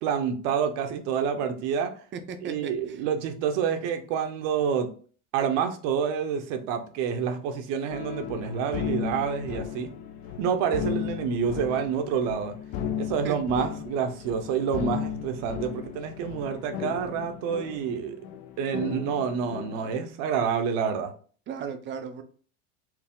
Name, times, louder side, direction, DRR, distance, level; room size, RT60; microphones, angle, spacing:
voice 1, 0.0-1.9 2.4-4.9 5.3-9.9 10.4-12.6 13.0-18.2 18.6-21.1, right 7 dB, 70° right, 0.8 m, -28 dB
voice 2, 2.1-3.0 13.2-13.3 21.5-22.2, right 6 dB, 30° right, 0.5 m, -36 dB
sound 1, 7.9-20.1, left 9 dB, 70° left, 0.7 m, -35 dB
4.6 x 2.0 x 3.6 m
supercardioid pair, 125°, 38 cm